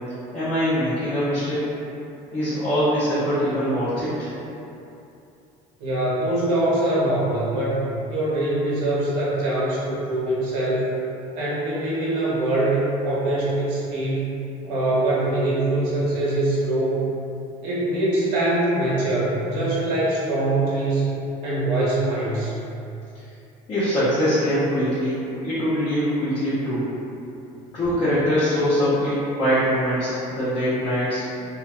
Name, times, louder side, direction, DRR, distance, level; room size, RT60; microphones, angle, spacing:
voice 1, 0.3-1.6 2.3-4.3 23.7-26.9 27.7-31.3, equal, 40° left, -14 dB, 0.7 m, -23 dB
voice 2, 5.8-10.9 11.3-14.3 14.6-17.1 17.6-21.1 21.4-22.5, right 1 dB, 80° right, -7 dB, 0.9 m, -23 dB
2.6 x 2.2 x 2.3 m, 2.7 s
cardioid pair, 140°, 16 cm